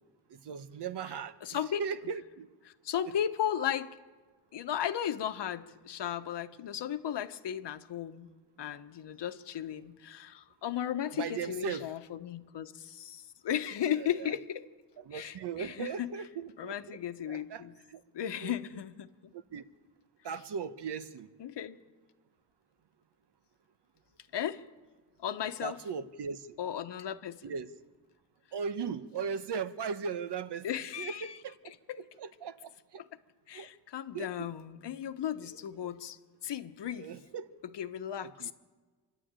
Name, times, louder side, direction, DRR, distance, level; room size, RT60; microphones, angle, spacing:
voice 1, 0.3-1.4 1.8-2.5 11.1-11.9 14.2-14.3 15.1-17.0 17.3-18.0 18.4-18.6 19.5-19.6 20.2-21.3 25.6-26.5 27.4-27.7 28.5-30.7 31.0-31.6 32.2-33.0 33.5-33.7 34.1-34.5 35.8-35.9 37.0-37.5 38.2-38.5, right 6 dB, 70° right, 12 dB, 1.1 m, -38 dB
voice 2, 1.4-2.1 2.6-4.0 4.5-14.7 15.1-16.1 16.6-17.8 18.1-19.3 21.4-21.8 24.3-24.6 25.2-25.8 26.6-27.5 30.6-31.4 31.6-32.1 33.0-33.1 33.5-37.1 37.6-38.5, left 10 dB, 70° left, 10 dB, 1.1 m, -36 dB
27.0 x 11.5 x 9.0 m, 1.4 s
wide cardioid pair, 130°, 43 cm